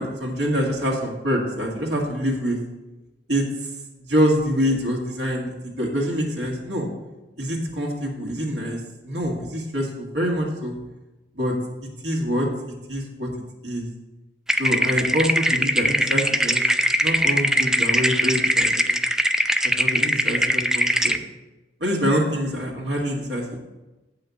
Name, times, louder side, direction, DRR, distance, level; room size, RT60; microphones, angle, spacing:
voice 1, 0.0-2.6 3.3-3.4 4.0-6.9 7.4-8.8 9.0-10.8 11.3-11.5 12.0-12.5 12.9-13.3 13.6-13.9 14.6-16.6 17.0-19.0 19.8-21.2 21.8-23.6, equal, 70° right, -2 dB, 2.2 m, -25 dB
sound 1, 14.5-21.2, equal, 5° right, 0.3 m, -21 dB
8.0 x 5.8 x 6.9 m, 1.1 s
head